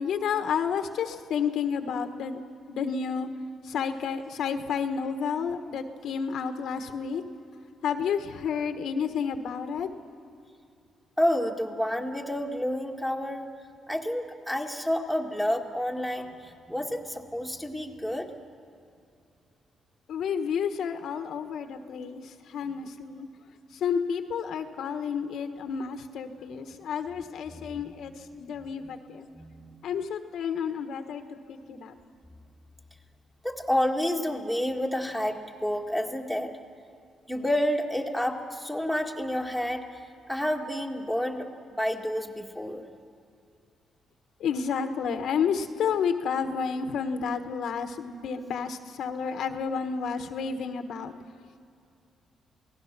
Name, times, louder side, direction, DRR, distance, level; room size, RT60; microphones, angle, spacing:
voice 1, 0.0-2.4 2.7-3.3 3.6-7.2 7.8-9.9 20.1-23.3 23.7-29.3 29.8-31.2 31.5-32.0 44.4-51.1, left 6 dB, 70° left, 7 dB, 1.3 m, -30 dB
voice 2, 11.2-13.5 13.9-18.3 26.4-26.6 27.5-27.8 28.6-28.9 29.3-29.8 31.7-31.8 33.4-36.5 37.3-39.8 40.3-42.8, equal, 5° right, 1 dB, 1.9 m, -29 dB
28.5 x 18.5 x 6.0 m, 2.5 s
cardioid pair, 115°, 0 cm